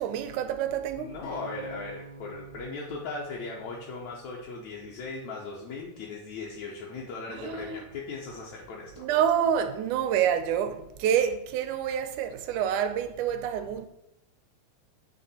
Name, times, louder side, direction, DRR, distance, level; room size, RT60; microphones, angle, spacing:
voice 1, 0.0-1.2 7.3-7.8 9.0-13.9, right 9 dB, 80° right, 1.8 m, -27 dB
voice 2, 1.0-9.1, left 3 dB, 75° left, 1.9 m, -38 dB
sound 1, 1.2-5.4, right 2 dB, 90° left, 2.7 m, -47 dB
8.6 x 3.1 x 4.1 m
omnidirectional pair, 3.7 m